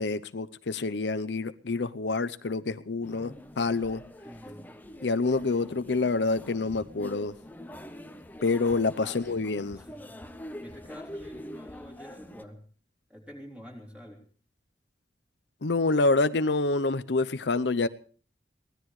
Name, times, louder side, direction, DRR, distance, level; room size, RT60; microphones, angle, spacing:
voice 1, 0.0-4.0 5.0-7.3 8.4-9.8 15.6-17.9, left 3 dB, 80° left, 12 dB, 0.7 m, -27 dB
sound 1, 3.0-12.4, equal, 10° left, 0.8 m, -45 dB
voice 2, 4.2-4.9 9.0-9.5 9.7-10.2 10.6-12.7 13.1-14.3, equal, 5° right, 0 dB, 3.4 m, -47 dB
23.5 x 17.5 x 3.2 m, 0.42 s
head